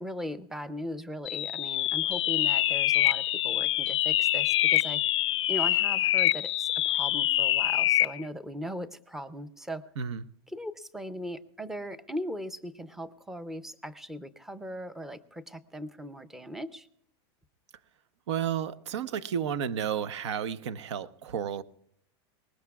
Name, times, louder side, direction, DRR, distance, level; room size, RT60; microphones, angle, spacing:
voice 1, 0.0-5.2 5.5-9.8 10.5-16.9, equal, 5° right, 0.5 m, -39 dB
sound 1, 1.3-8.2, left 15 dB, 90° left, 0.5 m, -25 dB
voice 2, 18.3-21.6, right 8 dB, 80° right, 0.8 m, -32 dB
23.0 x 20.0 x 2.3 m
supercardioid pair, 160°, 14 cm